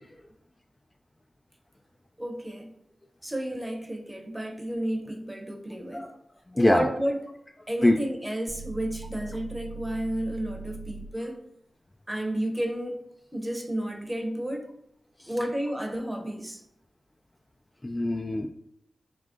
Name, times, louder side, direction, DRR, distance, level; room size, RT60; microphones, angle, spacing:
voice 1, 2.2-2.7 3.2-6.1 6.5-7.2 7.7-11.4 12.1-13.0 13.3-14.7 15.3-16.6, right 1 dB, 10° right, 5 dB, 0.8 m, -31 dB
voice 2, 6.5-6.9 7.8-8.0 15.2-15.3 17.8-18.5, left 1 dB, 20° left, 4 dB, 0.3 m, -23 dB
sound 1, 8.5-11.3, right 4 dB, 60° right, 0.4 m, -41 dB
3.7 x 3.2 x 3.6 m, 0.80 s
cardioid pair, 65°, 0 cm